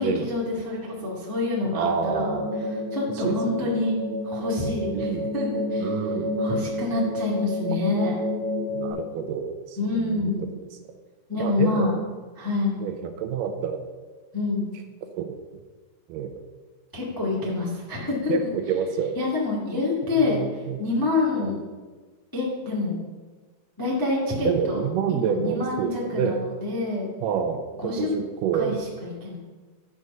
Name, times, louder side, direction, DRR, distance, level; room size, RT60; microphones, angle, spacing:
voice 1, 0.0-2.4 2.9-3.9 4.2-5.1 5.3-5.9 6.4-8.1 9.8-10.5 11.3-11.9 12.4-12.8 14.3-14.7 16.9-18.3 19.1-20.4 20.8-21.6 22.3-23.0 23.8-24.8 25.1-27.1 27.8-28.1 28.5-29.3, left 3 dB, 20° left, -5 dB, 0.5 m, -27 dB
voice 2, 1.7-2.5 3.2-3.4 3.6-3.8 4.9-5.3 5.8-6.4 8.7-10.3 11.4-11.9 12.8-13.8 15.2-15.4 16.1-16.3 18.3-19.3 20.2-20.8 21.4-21.5 24.4-26.4 27.2-28.8, right 7 dB, 75° right, 6 dB, 2.1 m, -28 dB
sound 1, 2.2-8.9, left 1 dB, 45° left, 3.2 m, -29 dB
9.6 x 4.9 x 6.6 m, 1.4 s
omnidirectional pair, 4.1 m